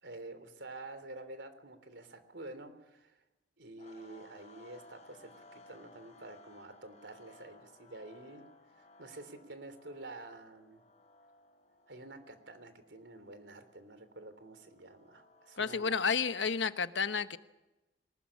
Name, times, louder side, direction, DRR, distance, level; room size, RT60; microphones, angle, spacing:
voice 1, 0.0-3.2 3.6-8.4 8.7-10.8 11.9-16.0, right 2 dB, 80° right, 10 dB, 3.4 m, -49 dB
sound 1, 3.8-16.1, left 2 dB, 40° left, 4.1 m, -60 dB
voice 2, 15.6-17.4, left 6 dB, 90° left, 11 dB, 1.1 m, -31 dB
23.0 x 20.0 x 8.7 m, 1.0 s
head